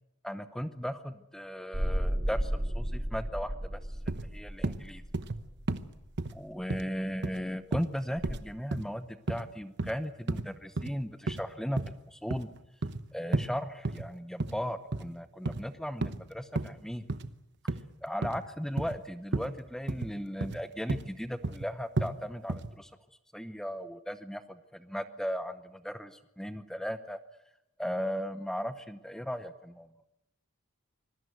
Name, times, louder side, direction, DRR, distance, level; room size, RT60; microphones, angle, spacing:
voice 1, 0.2-3.8 4.2-5.0 6.3-12.5 13.1-17.0 18.0-22.9 23.3-27.2 27.8-29.9, equal, ahead, 10 dB, 0.8 m, -37 dB
sound 1, 1.7-6.2 8.2-8.4, equal, 30° right, 2.2 m, -33 dB
sound 2, 4.1-4.3 4.6-4.8 5.1-5.4 5.7-5.8 6.2-6.3 6.7-6.9 7.2-7.4 7.7-7.9 8.2-8.4 8.7-8.9 9.3-9.4 9.8-9.9 10.3-10.5 10.8-10.9 11.3-11.5 11.8-11.9 12.3-13.0 13.3-13.5 13.9-14.1 14.4-14.6 14.9-15.1 15.5-15.6 16.0-16.2 16.6-16.7 17.1-17.3 17.7-17.8 18.2-18.4 18.8-19.0 19.3-19.5 19.9-20.1 20.4-20.6 20.9-21.1 21.4-21.7 22.0-22.1 22.5-22.7, right 2 dB, 50° right, 1.0 m, -32 dB
25.5 x 20.5 x 8.0 m, 0.86 s
head